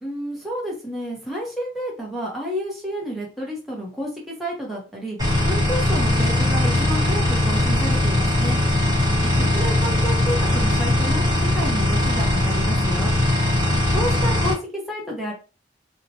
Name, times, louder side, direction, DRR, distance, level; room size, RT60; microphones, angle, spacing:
voice 1, 0.0-5.2 5.4-8.6 9.3-11.2 11.5-13.1 13.9-15.3, equal, ahead, -4 dB, 0.7 m, -30 dB
sound 1, 5.2-14.5, left 1 dB, 20° right, 1.0 m, -20 dB
2.9 x 2.1 x 2.6 m, 0.32 s
head